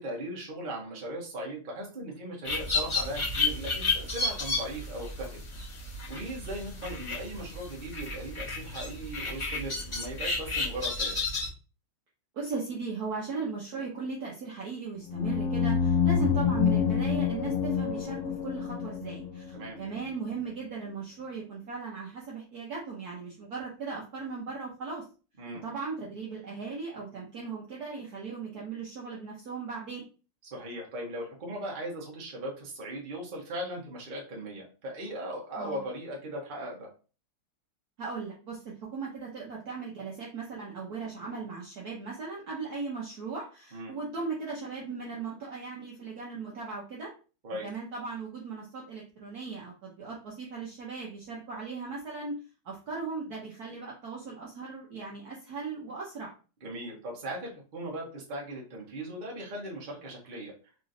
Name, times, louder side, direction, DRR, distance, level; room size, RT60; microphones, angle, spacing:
voice 1, 0.0-5.4 6.1-11.2 19.5-19.8 25.4-25.6 30.5-36.9 43.7-43.9 47.4-47.7 56.6-60.5, right 1 dB, 35° right, -2 dB, 0.9 m, -38 dB
sound 1, 2.4-11.5, left 3 dB, 40° left, 0.4 m, -32 dB
voice 2, 12.3-25.0 25.6-30.0 35.6-35.8 38.0-47.1 47.6-52.3 52.6-56.3, right 4 dB, 60° right, -3 dB, 1.0 m, -37 dB
sound 2, 15.1-19.6, left 7 dB, 80° left, 0.6 m, -27 dB
4.0 x 3.0 x 2.5 m, 0.35 s
omnidirectional pair, 2.3 m